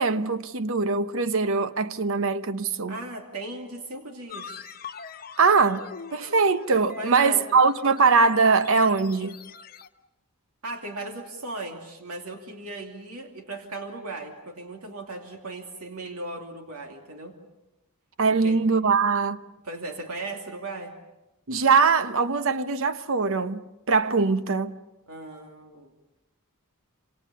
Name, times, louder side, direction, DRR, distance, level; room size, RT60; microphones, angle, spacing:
voice 1, 0.0-3.0 5.4-5.8 6.1-9.4 18.2-19.4 21.5-24.8, right 4 dB, 65° right, 0.9 m, -22 dB
voice 2, 2.9-4.6 7.0-7.4 10.6-17.3 18.4-18.6 19.6-21.0 25.1-25.9, right 2 dB, 80° right, 2.8 m, -37 dB
sound 1, 4.3-9.9, left 5 dB, 40° left, 1.0 m, -43 dB
27.5 x 26.5 x 7.0 m
head